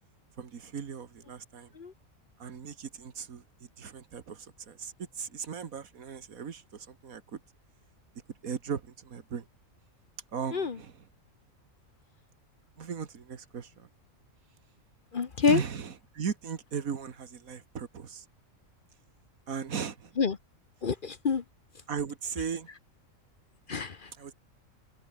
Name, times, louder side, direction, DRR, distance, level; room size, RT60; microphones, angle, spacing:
voice 1, 0.3-1.7 2.4-3.5 3.8-7.4 8.4-9.5 10.3-11.1 12.8-13.9 15.5-18.3 19.5-20.1 21.9-22.7 24.1-24.3, right 6 dB, 85° right, 2.0 m, -37 dB
voice 2, 15.1-15.6 20.2-20.4 20.8-21.4 23.7-24.1, left 5 dB, 40° left, 1.0 m, -27 dB
omnidirectional pair, 1.4 m